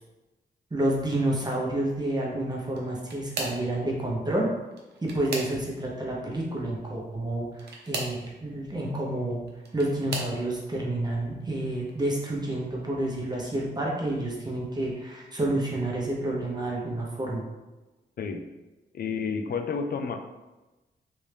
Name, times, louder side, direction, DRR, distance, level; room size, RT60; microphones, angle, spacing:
voice 1, 0.7-4.5 5.0-9.4 9.7-17.4, right 1 dB, 20° right, -3 dB, 0.9 m, -29 dB
sound 1, 2.7-3.7 4.6-5.9 7.5-8.2 9.3-10.4 11.1-11.5 11.9-12.0 13.4-13.5, right 3 dB, 70° right, 0.7 m, -36 dB
voice 2, 18.2-18.5 18.9-20.2, left 5 dB, 55° left, 6 dB, 0.4 m, -30 dB
3.3 x 2.6 x 3.3 m, 1.1 s
cardioid pair, 85°, 18 cm